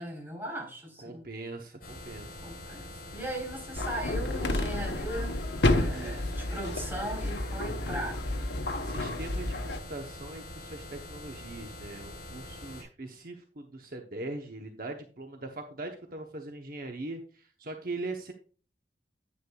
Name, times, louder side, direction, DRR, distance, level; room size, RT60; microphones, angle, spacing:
voice 1, 0.0-1.3 2.4-5.4 5.7-8.2, right 1 dB, 15° right, -1 dB, 3.7 m, -38 dB
voice 2, 1.0-2.4 5.9-6.4 8.6-18.3, right 2 dB, 55° right, 3 dB, 0.9 m, -41 dB
sound 1, 1.8-12.8, left 1 dB, 55° left, 4.6 m, -44 dB
sound 2, 3.8-9.8, left 2 dB, 75° left, 1.0 m, -30 dB
9.7 x 9.7 x 2.3 m, 0.39 s
head